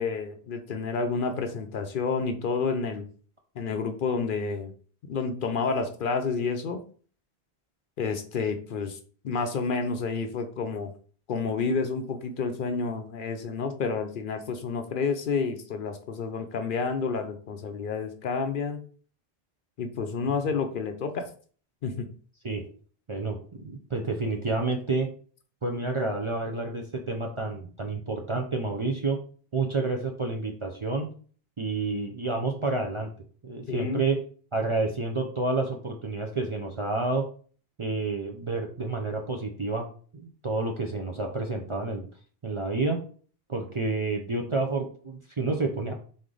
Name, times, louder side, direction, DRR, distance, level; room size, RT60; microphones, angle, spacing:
voice 1, 0.0-3.0 3.6-4.7 5.0-6.8 8.0-9.0 9.2-10.9 11.3-18.8 19.8-21.3 21.8-22.1 33.7-34.0, left 5 dB, 60° left, 6 dB, 0.7 m, -29 dB
voice 2, 23.1-25.1 25.6-29.2 29.5-31.1 31.6-33.1 33.4-34.2 34.5-37.2 37.8-39.9 40.1-42.1 42.4-43.0 43.5-45.9, right 3 dB, 40° right, 1 dB, 0.5 m, -29 dB
3.8 x 3.2 x 3.8 m, 0.43 s
omnidirectional pair, 1.1 m